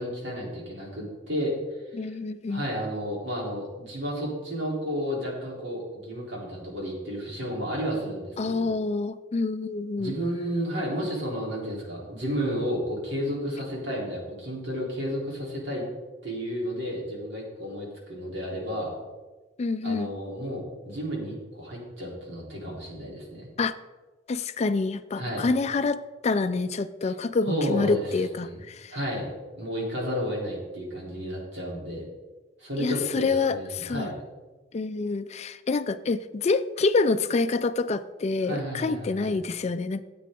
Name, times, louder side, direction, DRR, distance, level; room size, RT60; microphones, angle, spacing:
voice 1, 0.0-1.5 2.0-2.2 2.5-8.8 10.0-15.8 16.2-18.9 19.8-23.5 25.2-25.5 27.1-27.2 27.5-28.1 28.4-28.6 28.9-29.3 29.6-32.0 32.6-34.1 38.4-39.3, equal, 70° right, -3 dB, 3.7 m, -32 dB
voice 2, 1.9-2.6 8.4-10.1 19.6-20.1 23.6-23.7 24.3-28.9 32.8-34.1 34.7-40.0, left 3 dB, 35° left, 12 dB, 0.4 m, -27 dB
13.0 x 8.5 x 3.8 m, 1.2 s
head